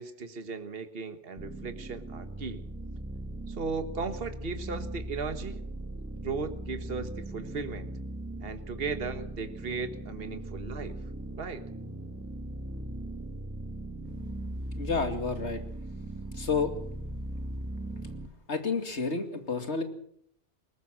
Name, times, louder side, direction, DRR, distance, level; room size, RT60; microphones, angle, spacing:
voice 1, 0.0-2.6 3.5-5.6 6.2-7.9 8.4-11.0 11.4-11.6, right 4 dB, 60° right, 9 dB, 1.6 m, -36 dB
sound 1, 1.4-18.3, right 1 dB, 10° right, 1.5 m, -39 dB
voice 2, 14.8-15.6 16.3-16.7 18.5-19.8, left 4 dB, 80° left, 7 dB, 2.7 m, -30 dB
21.5 x 19.5 x 6.3 m, 0.65 s
omnidirectional pair, 1.1 m